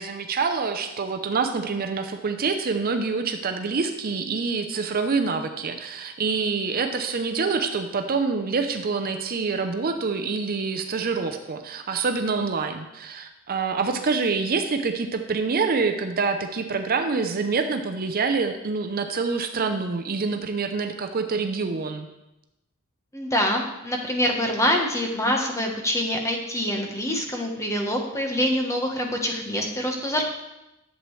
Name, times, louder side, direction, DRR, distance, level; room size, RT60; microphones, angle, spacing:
voice 1, 0.0-22.1, right 4 dB, 45° right, 6 dB, 0.6 m, -26 dB
voice 2, 23.1-30.3, equal, 15° left, 2 dB, 1.1 m, -25 dB
11.0 x 7.6 x 3.2 m, 0.94 s
head